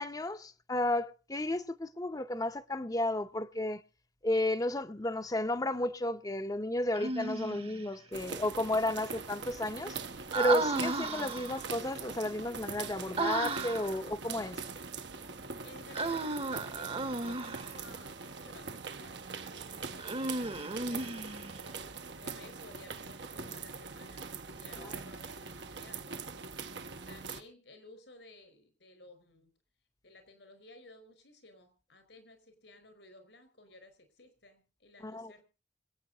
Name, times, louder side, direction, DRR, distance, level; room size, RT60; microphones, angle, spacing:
voice 1, 0.0-3.8 4.2-10.0 10.3-14.6 35.0-35.3, left 1 dB, 20° left, 0.7 m, -33 dB
Human voice, 6.9-7.8 10.3-11.7 13.2-14.0 15.9-17.7 20.0-21.6, right 3 dB, 35° right, 1.0 m, -34 dB
sound 1, 8.1-27.4, right 4 dB, 80° right, 1.2 m, -43 dB
voice 2, 10.5-10.9 15.5-21.1 21.5-24.2 24.5-26.2 27.1-29.5 30.0-35.4, left 2 dB, 85° left, 4.6 m, -56 dB
26.5 x 8.8 x 4.0 m
head